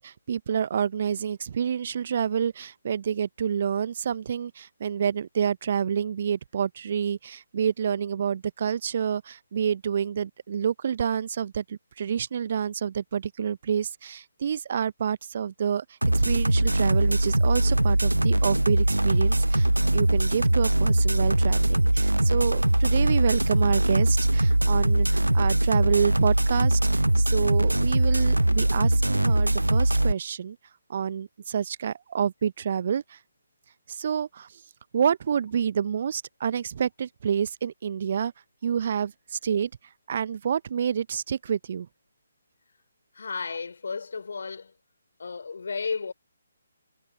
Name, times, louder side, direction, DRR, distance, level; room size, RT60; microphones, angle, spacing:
voice 1, 0.0-30.6 30.9-33.2 33.9-34.6 34.9-38.3 38.6-39.7 40.1-41.9, right 8 dB, 45° right, 0.8 m, -28 dB
sound 1, 16.0-30.1, right 1 dB, 85° right, 0.3 m, -22 dB
voice 2, 43.1-44.7 45.2-46.1, left 5 dB, 55° left, 4.1 m, -33 dB
figure-of-eight pair, 140°, 0 cm